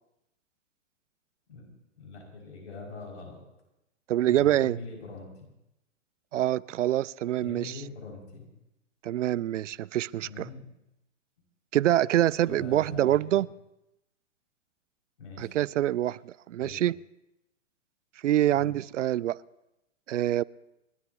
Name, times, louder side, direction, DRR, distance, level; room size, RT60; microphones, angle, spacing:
voice 1, 2.0-3.4 4.3-5.5 7.4-8.5 10.2-10.7 12.5-13.4 15.2-15.5 16.6-16.8 18.5-18.7, left 3 dB, 70° left, 5.8 m, -42 dB
voice 2, 4.1-4.8 6.3-7.8 9.0-10.4 11.7-13.5 15.4-16.9 18.2-19.4 20.1-20.4, right 13 dB, 75° right, 0.5 m, -25 dB
30.0 x 12.5 x 2.9 m
hypercardioid pair, 125°, 38 cm